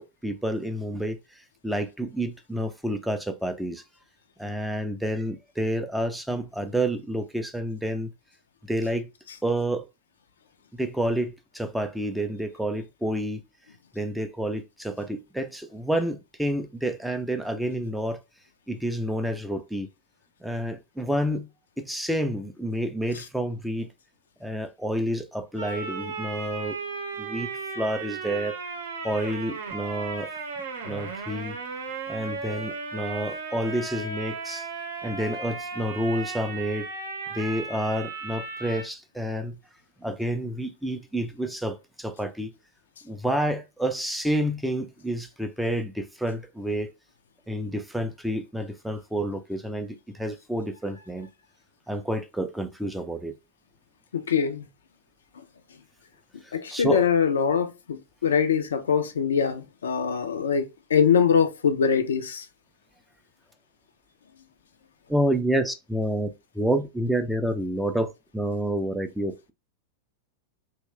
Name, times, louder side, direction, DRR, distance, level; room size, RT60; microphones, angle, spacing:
voice 1, 0.0-3.8 4.4-8.1 8.6-9.1 9.4-9.9 10.7-13.4 13.9-18.2 18.7-19.9 20.4-21.5 21.8-23.9 24.4-26.8 27.2-28.6 29.0-30.3 30.9-31.6 32.1-34.7 35.0-36.9 37.3-39.6 40.0-42.5 43.0-46.9 47.5-51.3 51.9-53.4 56.4-57.1 65.1-69.5, right 1 dB, ahead, 0.4 m, -29 dB
sound 1, 25.6-38.8, right 4 dB, 65° right, 0.7 m, -35 dB
voice 2, 54.1-54.7 56.5-60.6 60.9-62.4, left 7 dB, 65° left, 0.3 m, -23 dB
2.9 x 2.1 x 3.0 m
figure-of-eight pair, 90°, 0 cm